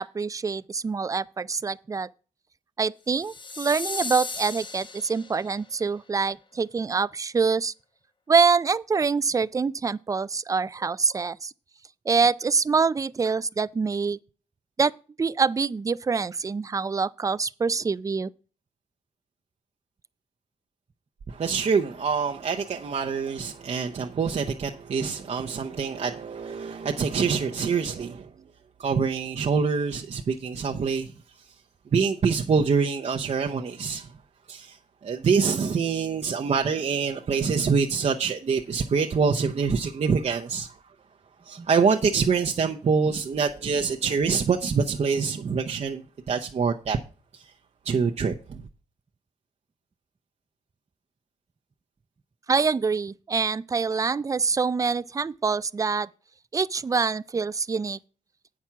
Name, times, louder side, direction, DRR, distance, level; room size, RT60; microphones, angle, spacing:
voice 1, 0.0-2.1 2.8-7.7 8.3-11.5 12.1-14.2 14.8-14.9 15.2-18.3 41.6-41.7 52.5-56.1 56.5-58.0, right 5 dB, 25° right, 0.3 m, -25 dB
sound 1, 3.1-5.6, left 4 dB, 35° left, 0.9 m, -36 dB
voice 2, 21.3-28.3 28.8-31.1 31.9-34.1 34.5-34.8 35.0-40.7 41.5-46.0 46.3-47.0 47.9-48.6, right 5 dB, 50° right, 0.7 m, -25 dB
8.5 x 6.0 x 5.7 m
wide cardioid pair, 110°, 14 cm